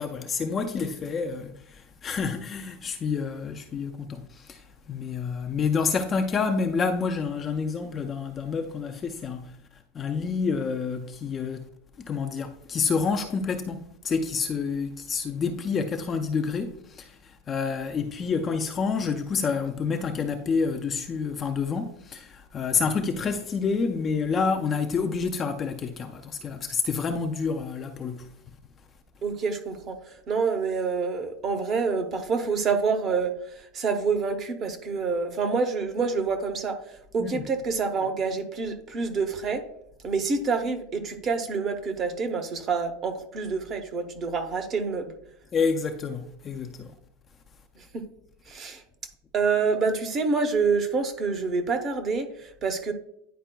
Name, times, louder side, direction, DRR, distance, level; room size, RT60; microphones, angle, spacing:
voice 1, 0.0-9.5 9.9-11.7 12.0-28.3 37.2-37.4 45.5-46.9, left 5 dB, 20° left, 0.3 m, -28 dB
voice 2, 29.2-39.6 40.0-45.1 47.8-48.0 48.5-48.8 49.3-52.9, right 4 dB, 25° right, 0.6 m, -27 dB
10.0 x 4.6 x 2.2 m
supercardioid pair, 175°, 0 cm